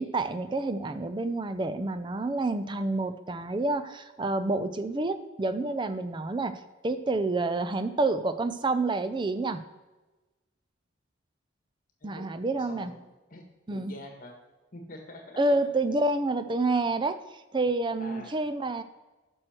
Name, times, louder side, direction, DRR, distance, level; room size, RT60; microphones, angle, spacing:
voice 1, 0.0-9.6 12.0-12.9 13.7-13.9 15.4-18.8, right 2 dB, 25° right, 11 dB, 0.4 m, -28 dB
voice 2, 12.6-12.9 13.3-13.4 13.7-14.3 14.7-15.6 18.0-18.4, left 1 dB, 40° left, 3 dB, 1.6 m, -45 dB
10.5 x 6.4 x 4.4 m, 1.1 s
head